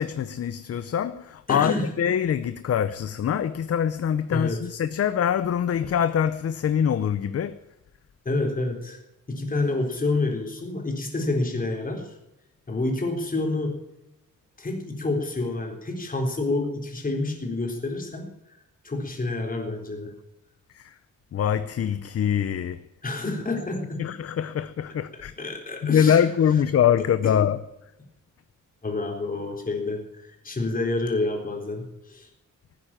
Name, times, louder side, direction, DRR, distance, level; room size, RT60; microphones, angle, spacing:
voice 1, 0.0-7.6 20.7-21.0 21.3-22.8 24.0-25.3 25.8-27.6, left 8 dB, 45° left, 0.6 m, -24 dB
voice 2, 1.5-1.9 4.3-4.6 8.2-9.0 9.3-12.2 12.7-13.8 14.6-18.3 18.8-20.1 23.0-24.0 25.1-26.2 27.0-27.3 28.8-32.3, left 2 dB, 25° left, 3.9 m, -28 dB
17.0 x 9.7 x 8.8 m
wide cardioid pair, 145°, 32 cm